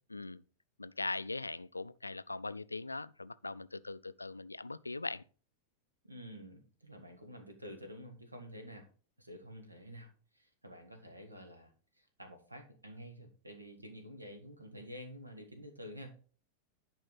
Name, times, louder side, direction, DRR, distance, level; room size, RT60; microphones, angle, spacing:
voice 1, 0.1-0.4 0.8-5.2, left 3 dB, 80° left, 0.3 m, -40 dB
voice 2, 6.0-8.9 9.2-16.2, equal, 85° right, 1.6 m, -50 dB
10.5 x 4.9 x 4.0 m
figure-of-eight pair, 90°, 0 cm